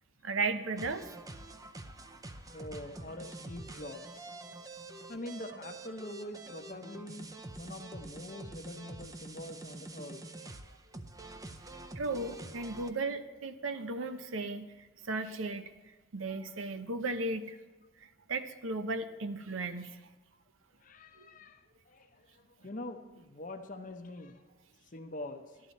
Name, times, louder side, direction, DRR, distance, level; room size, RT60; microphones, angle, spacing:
voice 1, 0.2-1.1 12.0-14.7 15.0-15.7 16.1-17.6 18.3-20.0 21.2-21.3, right 3 dB, 85° right, 10 dB, 0.8 m, -35 dB
sound 1, 0.8-12.9, right 2 dB, 20° right, 0.5 m, -47 dB
voice 2, 2.5-4.4 5.1-10.2 20.8-24.4 24.9-25.4, left 1 dB, 40° left, 7 dB, 0.8 m, -44 dB
12.5 x 11.5 x 4.2 m, 1.3 s
head